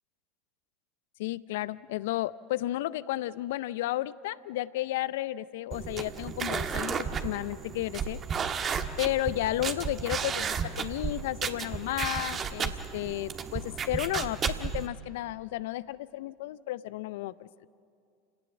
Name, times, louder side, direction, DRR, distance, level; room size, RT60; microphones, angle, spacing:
voice 1, 1.2-8.2 9.0-17.5, left 15 dB, 70° left, 18 dB, 0.5 m, -33 dB
sound 1, 5.7-14.9, right 6 dB, 35° right, 1.4 m, -33 dB
28.5 x 18.0 x 7.2 m, 2.3 s
hypercardioid pair, 80°, 0 cm